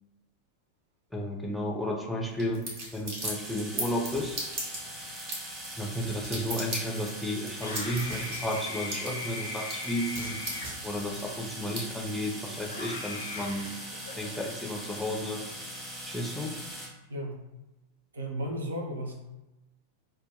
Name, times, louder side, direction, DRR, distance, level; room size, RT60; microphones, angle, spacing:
voice 1, 1.1-2.6 2.9-4.4 5.8-10.4 10.8-13.7 14.2-15.4 16.0-16.6, left 1 dB, ahead, -1 dB, 0.5 m, -33 dB
sound 1, 2.3-11.8, right 1 dB, 50° right, 1.1 m, -38 dB
sound 2, 3.2-16.9, equal, 15° right, 0.9 m, -41 dB
Screaming, 7.6-12.0 12.6-14.4, left 2 dB, 75° left, 0.5 m, -40 dB
voice 2, 17.1-17.4 18.1-19.1, equal, 70° right, 1 dB, 0.5 m, -34 dB
2.5 x 2.2 x 3.8 m, 1.0 s
figure-of-eight pair, 90°, 0 cm